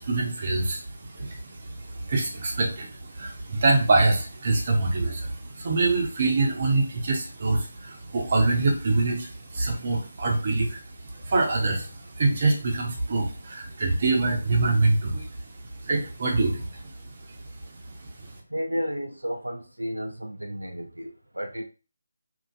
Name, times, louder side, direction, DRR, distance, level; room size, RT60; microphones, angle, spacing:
voice 1, 0.0-18.4, right 3 dB, 40° right, 0 dB, 0.8 m, -25 dB
voice 2, 18.5-21.6, equal, 85° right, 3 dB, 0.5 m, -32 dB
2.9 x 2.6 x 2.5 m, 0.34 s
figure-of-eight pair, 155°, 0 cm